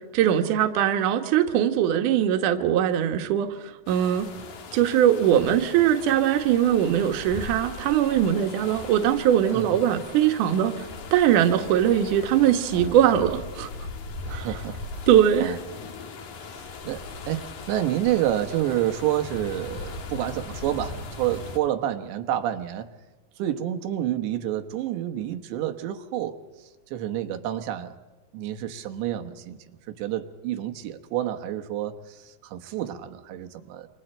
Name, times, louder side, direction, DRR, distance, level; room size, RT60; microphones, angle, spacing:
voice 1, 0.1-3.6 3.9-4.3 4.7-10.7 11.1-13.7 14.3-14.5 15.1-15.5, right 10 dB, 60° right, 5 dB, 2.4 m, -21 dB
sound 1, 3.9-21.6, left 4 dB, 55° left, 2.9 m, -39 dB
voice 2, 9.5-9.8 12.7-12.9 14.2-15.1 15.4-15.6 16.5-22.9 23.4-28.0 28.3-33.9, right 12 dB, 90° right, 6 dB, 3.5 m, -29 dB
28.0 x 26.0 x 4.5 m, 1.2 s
omnidirectional pair, 4.9 m